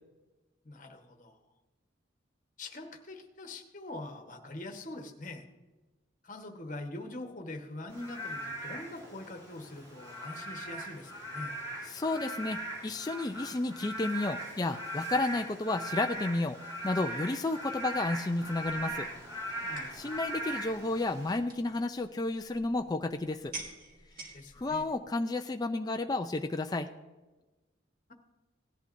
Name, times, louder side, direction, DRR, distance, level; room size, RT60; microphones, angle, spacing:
voice 1, 0.6-1.4 2.6-5.4 6.2-11.6 19.6-20.0 24.3-24.9, left 2 dB, 40° left, 4 dB, 1.2 m, -43 dB
Frog / Rain, 7.9-21.4, right 1 dB, 20° right, 4.5 m, -40 dB
voice 2, 11.9-16.6 16.8-19.1 19.9-23.5 24.6-26.9, left 2 dB, 20° left, 5 dB, 0.4 m, -32 dB
sound 1, 18.0-25.0, right 3 dB, 45° right, 1.9 m, -50 dB
17.5 x 11.0 x 2.6 m, 1.2 s
head